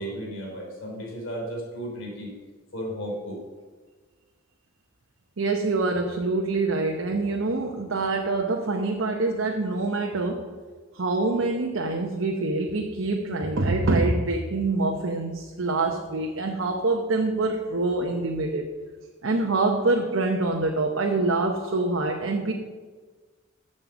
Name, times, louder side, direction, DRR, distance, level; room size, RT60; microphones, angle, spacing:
voice 1, 0.0-2.3 2.7-3.4, equal, 65° left, -1 dB, 3.3 m, -34 dB
voice 2, 5.4-10.5 10.9-18.7 19.2-22.5, right 3 dB, 75° right, 2 dB, 0.8 m, -25 dB
7.5 x 6.5 x 7.2 m, 1.4 s
head